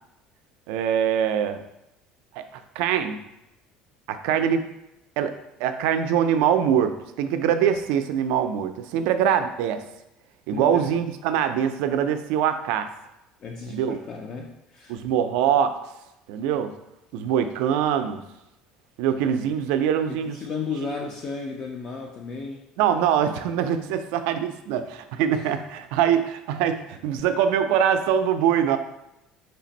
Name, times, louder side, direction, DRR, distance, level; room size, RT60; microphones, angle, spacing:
voice 1, 0.7-1.6 2.4-2.5 2.8-3.2 4.1-4.6 5.2-5.3 5.6-9.8 10.5-12.9 13.7-14.0 14.9-15.8 16.3-16.7 17.1-18.2 19.0-20.4 22.8-28.8, right 9 dB, 75° right, 8 dB, 0.3 m, -23 dB
voice 2, 10.5-11.0 13.4-15.1 20.1-22.6 25.3-25.5, left 4 dB, 35° left, 1 dB, 0.3 m, -34 dB
3.2 x 2.5 x 4.0 m, 0.89 s
cardioid pair, 160°, 2 cm